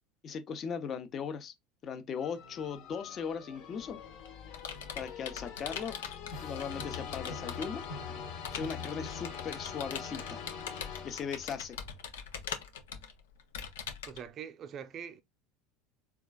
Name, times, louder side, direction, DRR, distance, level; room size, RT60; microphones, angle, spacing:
voice 1, 0.2-1.5 1.8-4.0 4.9-6.0 6.4-7.8 8.5-10.4 11.0-11.8, left 6 dB, 40° left, 0.7 m, -38 dB
sound 1, 2.2-11.7, left 6 dB, 65° left, 1.0 m, -43 dB
Computer keyboard, 3.8-7.9 8.4-14.2, left 7 dB, 85° left, 0.6 m, -42 dB
voice 2, 14.1-15.2, right 8 dB, 45° right, 0.4 m, -43 dB
3.7 x 2.4 x 2.3 m
hypercardioid pair, 95°, 0 cm